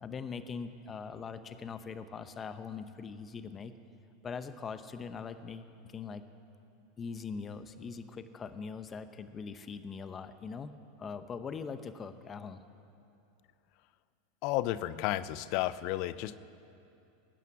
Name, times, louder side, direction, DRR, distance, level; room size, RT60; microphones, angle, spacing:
voice 1, 0.0-3.7 4.2-6.2 7.0-12.6, left 5 dB, 25° left, 11 dB, 0.8 m, -42 dB
voice 2, 14.4-16.4, left 15 dB, 55° left, 17 dB, 0.6 m, -32 dB
20.0 x 9.3 x 7.1 m, 2.6 s
hypercardioid pair, 115°, 0 cm